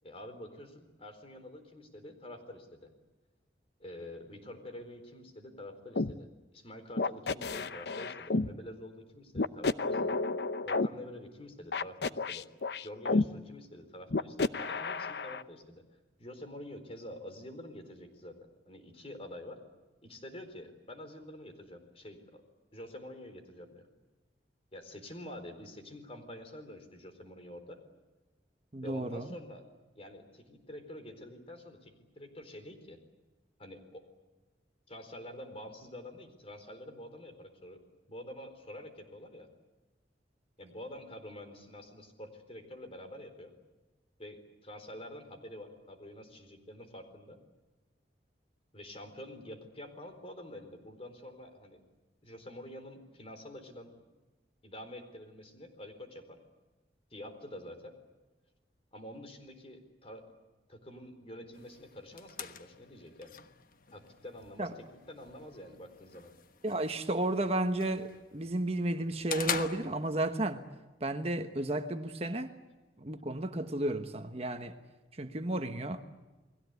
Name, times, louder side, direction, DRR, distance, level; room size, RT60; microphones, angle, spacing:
voice 1, 0.0-2.9 3.8-6.3 6.5-10.2 10.6-12.5 12.8-15.8 16.2-19.6 20.0-22.4 22.7-23.9 24.7-27.8 28.8-29.7 29.9-33.0 33.6-34.1 34.9-37.8 38.1-39.5 40.6-43.5 44.2-47.4 48.7-51.8 52.2-53.9 54.6-56.4 57.1-58.0 58.9-60.3 60.7-63.3 63.9-66.3, left 1 dB, 35° left, 4.2 m, -47 dB
sound 1, 5.9-6.1 7.0-8.5 9.3-10.9 11.7-13.2 14.1-15.4, left 3 dB, 70° left, 0.8 m, -31 dB
voice 2, 28.7-29.3 64.6-64.7 66.6-70.6 71.0-72.5 73.0-74.7 75.1-76.1, right 1 dB, 35° right, 1.3 m, -33 dB
sound 2, 61.5-70.5, left 7 dB, 50° left, 1.2 m, -44 dB
30.0 x 20.5 x 8.3 m
head